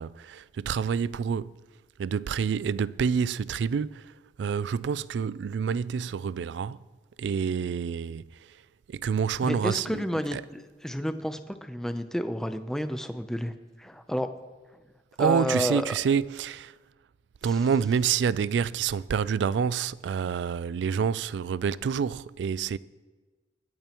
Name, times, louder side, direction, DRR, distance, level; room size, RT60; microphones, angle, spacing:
voice 1, 0.0-1.6 2.0-6.8 7.2-8.6 8.9-10.4 15.2-16.7 17.4-22.8, right 6 dB, 70° right, 0.3 m, -28 dB
voice 2, 9.4-13.5 13.8-14.3 15.2-15.9, equal, 5° left, 0.6 m, -30 dB
24.5 x 8.9 x 3.0 m
head